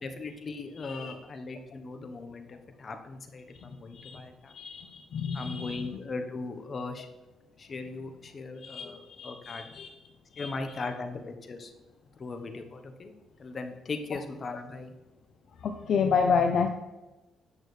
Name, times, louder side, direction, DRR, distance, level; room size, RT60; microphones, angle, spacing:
voice 1, 0.0-4.5 5.3-7.1 7.6-9.6 10.4-11.7 12.2-13.1 13.4-14.9, left 3 dB, 40° left, 6 dB, 1.0 m, -38 dB
voice 2, 0.8-1.1 3.9-4.1 4.5-5.9 8.6-9.9 10.3-10.5 14.1-14.2 15.6-16.7, left 5 dB, 60° left, 5 dB, 0.5 m, -29 dB
8.6 x 6.4 x 3.2 m, 1.1 s
cardioid pair, 90°, 0 cm